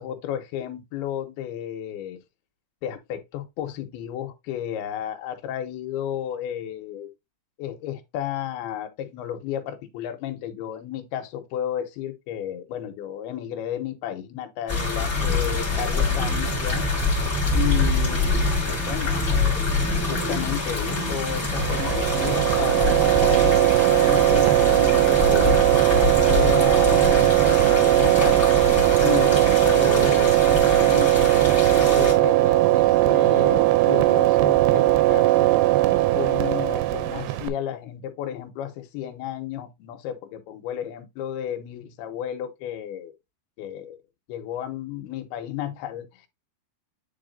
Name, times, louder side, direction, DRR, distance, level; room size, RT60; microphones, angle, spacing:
voice 1, 0.0-2.2 2.8-7.1 7.6-16.9 17.5-18.2 18.7-19.7 20.0-28.4 29.0-35.5 36.1-43.1 43.6-44.0 44.3-46.3, left 11 dB, 80° left, 2.7 m, -33 dB
sound 1, 14.7-32.1, left 3 dB, 20° left, 2.0 m, -25 dB
sound 2, 21.5-37.5, right 17 dB, 85° right, 2.6 m, -19 dB
9.9 x 4.1 x 2.6 m
omnidirectional pair, 4.8 m